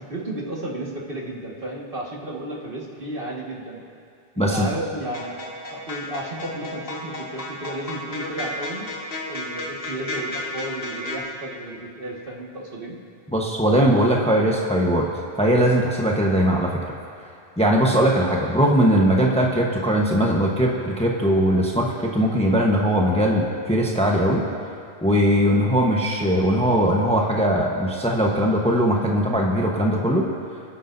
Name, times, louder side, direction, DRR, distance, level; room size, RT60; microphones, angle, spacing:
voice 1, 0.0-3.8 4.4-5.4 5.7-8.9 9.3-13.0, right 1 dB, 55° right, -3 dB, 2.0 m, -33 dB
voice 2, 4.4-4.7 13.3-15.1 15.4-16.7 17.6-24.4 25.0-30.3, equal, 5° left, -1 dB, 1.0 m, -20 dB
sound 1, 5.1-11.2, left 2 dB, 60° left, 1.8 m, -33 dB
27.0 x 10.0 x 2.7 m, 2.5 s
omnidirectional pair, 1.1 m